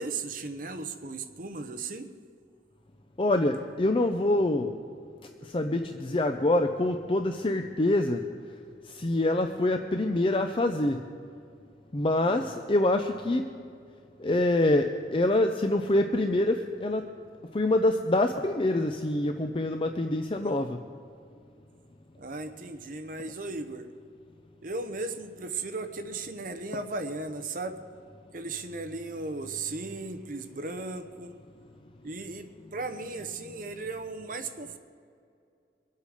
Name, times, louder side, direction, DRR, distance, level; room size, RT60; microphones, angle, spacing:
voice 1, 0.0-2.1 12.2-12.7 20.4-20.7 22.2-23.9 24.6-27.8 28.3-31.3 32.0-34.8, right 3 dB, 50° right, 9 dB, 0.8 m, -36 dB
voice 2, 3.2-4.8 5.5-8.2 8.9-11.0 11.9-13.5 14.2-17.1 17.5-20.8, left 1 dB, 30° left, 6 dB, 0.5 m, -25 dB
24.0 x 8.4 x 4.9 m, 2.4 s
head